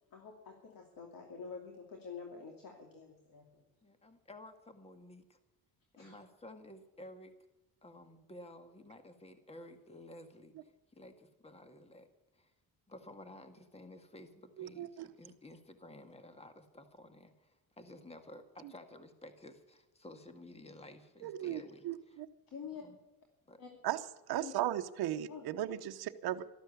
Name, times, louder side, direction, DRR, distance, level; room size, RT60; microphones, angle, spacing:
voice 1, 0.1-3.6 6.0-6.1 22.5-22.8 23.6-23.7 24.4-24.5 25.3-25.5, left 6 dB, 55° left, 1 dB, 2.7 m, -48 dB
voice 2, 3.8-5.4 6.0-7.3 7.8-12.1 12.3-12.5 12.9-22.2 22.8-23.0 23.5-23.6, left 1 dB, 15° left, 8 dB, 1.8 m, -53 dB
voice 3, 14.6-15.1 21.2-22.3 23.8-24.0 24.3-26.5, right 12 dB, 65° right, 7 dB, 1.0 m, -36 dB
13.0 x 12.5 x 8.4 m, 1.0 s
cardioid pair, 100°, 41 cm